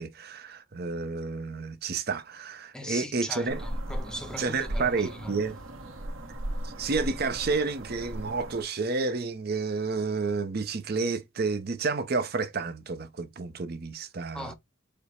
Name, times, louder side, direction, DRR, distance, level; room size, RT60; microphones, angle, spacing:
voice 1, 0.0-3.6 4.4-5.6 6.6-14.5, right 4 dB, 50° right, 0.6 m, -30 dB
voice 2, 2.7-5.4 14.3-14.5, equal, 5° left, 0.5 m, -39 dB
sound 1, 3.5-8.6, right 1 dB, 75° right, 1.0 m, -37 dB
5.0 x 2.1 x 4.2 m
head